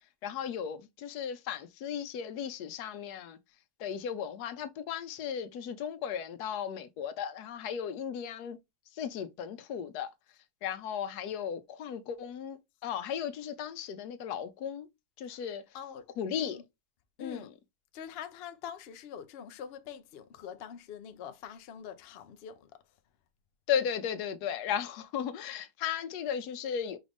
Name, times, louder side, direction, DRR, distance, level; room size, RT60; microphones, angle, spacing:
voice 1, 0.2-3.4 3.8-8.6 8.9-10.1 10.6-14.9 15.2-15.6 16.2-16.6 17.2-17.5 23.7-27.0, left 8 dB, 85° left, 1.2 m, -35 dB
voice 2, 15.7-16.6 17.2-17.5 17.9-22.8, left 8 dB, 70° left, 0.6 m, -45 dB
5.2 x 2.5 x 3.4 m
omnidirectional pair, 1.7 m